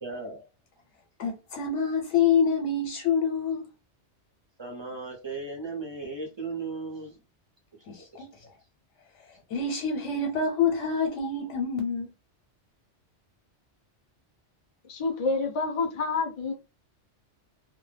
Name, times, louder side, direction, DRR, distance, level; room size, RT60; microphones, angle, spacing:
voice 1, 0.0-0.4 4.6-7.2 7.7-8.3 9.3-9.4, right 3 dB, 35° right, 0.5 m, -37 dB
voice 2, 1.2-3.6 7.9-8.3 9.5-12.1, left 5 dB, 80° left, 0.9 m, -26 dB
voice 3, 14.8-16.5, left 3 dB, 45° left, 0.4 m, -28 dB
2.1 x 2.0 x 3.2 m
omnidirectional pair, 1.2 m